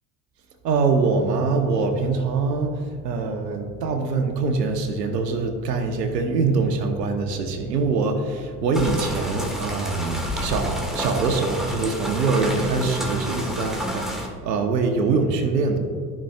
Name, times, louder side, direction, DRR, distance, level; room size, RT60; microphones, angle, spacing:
voice 1, 0.6-15.8, right 4 dB, 85° right, 5 dB, 1.2 m, -24 dB
sound 1, 8.7-14.3, equal, ahead, 1.5 m, -30 dB
13.5 x 5.9 x 2.4 m, 2.2 s
hypercardioid pair, 75°, 48 cm